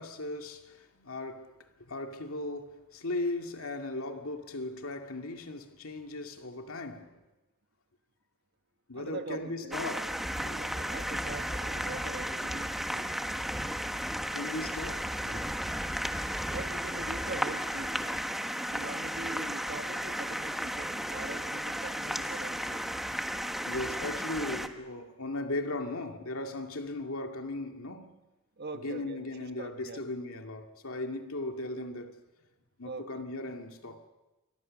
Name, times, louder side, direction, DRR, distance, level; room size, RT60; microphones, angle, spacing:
voice 1, 0.0-7.2 8.9-10.1 10.4-10.6 13.0-13.1 14.1-15.5 23.7-28.2 28.8-32.2 32.8-34.0, left 2 dB, 75° left, 2.3 m, -37 dB
voice 2, 8.9-10.0 10.4-13.2 16.5-18.2 18.5-22.8 28.6-30.0 32.8-33.2, right 2 dB, 50° right, 1.6 m, -43 dB
sound 1, 9.7-24.7, equal, ahead, 1.2 m, -34 dB
28.5 x 22.5 x 6.5 m
head